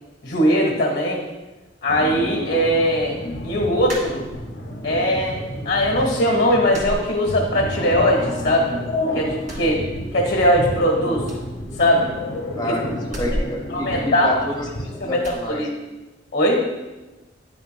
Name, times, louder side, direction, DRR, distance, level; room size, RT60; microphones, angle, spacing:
voice 1, 0.2-1.2 1.8-3.2 3.4-4.3 4.8-8.8 9.1-9.8 10.1-11.2 11.8-12.1 13.7-14.4 15.0-15.7 16.3-16.6, equal, 65° left, -1 dB, 1.3 m, -20 dB
sound 1, 1.9-15.0, left 1 dB, 85° left, 1.6 m, -31 dB
sound 2, 3.8-4.7 5.1-5.8 6.1-6.2 6.7-7.8 8.1-8.9 9.3-10.5 10.8-10.9 11.2-12.4 13.0-14.7 15.2-15.5, equal, 45° right, 2.0 m, -34 dB
voice 2, 9.6-10.0 12.5-15.7, left 1 dB, 20° left, -1 dB, 1.0 m, -30 dB
10.0 x 6.4 x 2.2 m, 1.1 s
head